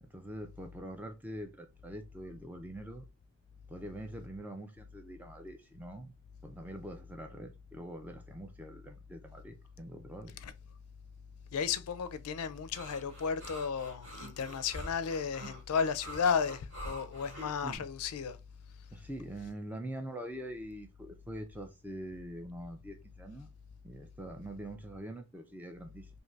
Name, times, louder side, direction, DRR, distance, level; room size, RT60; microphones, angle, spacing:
voice 1, 0.0-3.1 3.7-6.1 6.4-10.4 17.6-17.8 18.9-23.5 23.8-26.1, right 1 dB, 5° right, 0.4 m, -44 dB
voice 2, 11.5-18.4, left 6 dB, 85° left, 0.4 m, -33 dB
sound 1, 12.7-17.8, equal, 55° right, 1.6 m, -46 dB
2.7 x 2.6 x 3.2 m
head